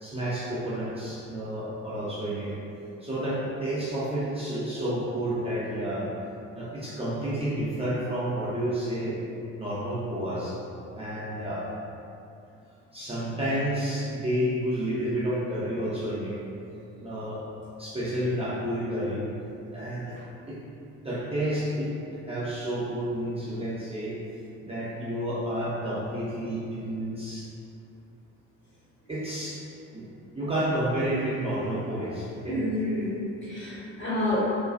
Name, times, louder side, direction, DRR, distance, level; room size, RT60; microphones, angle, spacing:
voice 1, 0.0-2.5 3.0-6.1 6.5-9.2 9.6-10.6 10.9-11.7 12.9-16.4 17.0-17.4 17.8-19.3 19.7-20.2 20.5-20.6 21.0-21.9 22.3-24.2 24.6-27.5 29.1-29.6 29.9-30.0 30.3-32.6, right 1 dB, 15° right, -9 dB, 0.6 m, -30 dB
voice 2, 32.5-34.4, left 1 dB, 30° left, -7 dB, 0.8 m, -29 dB
2.5 x 2.2 x 2.4 m, 2.7 s
figure-of-eight pair, 45°, 38 cm